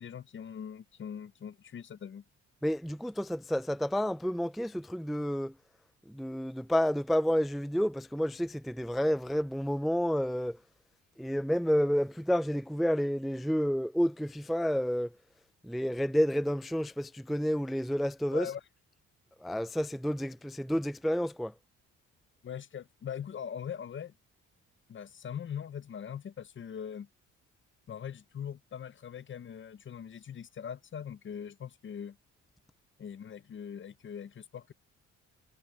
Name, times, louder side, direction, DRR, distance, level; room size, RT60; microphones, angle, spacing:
voice 1, 0.0-2.2 18.3-18.6 22.4-24.1 24.9-27.1 27.9-32.2 33.0-34.7, left 8 dB, 40° left, 0.7 m, -41 dB
voice 2, 2.6-5.5 6.1-10.6 11.2-15.1 15.6-18.5 19.4-21.5, equal, ahead, 0.4 m, -30 dB
cardioid pair, 90°, 30 cm